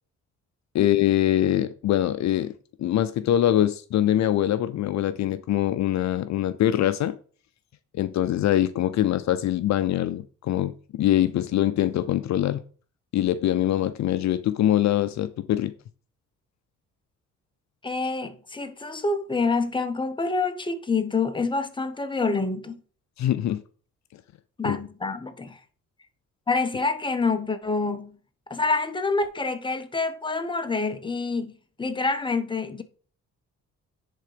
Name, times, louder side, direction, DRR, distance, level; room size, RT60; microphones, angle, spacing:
voice 1, 0.7-2.5 2.8-7.1 7.9-12.6 13.1-15.7 23.2-23.6 24.6-24.8, left 12 dB, 65° left, 0.6 m, -23 dB
voice 2, 17.8-22.8 24.6-25.6 26.5-28.2 28.5-31.5 31.8-32.8, left 3 dB, 15° left, 1.1 m, -27 dB
10.0 x 3.8 x 5.0 m
cardioid pair, 90°, 30 cm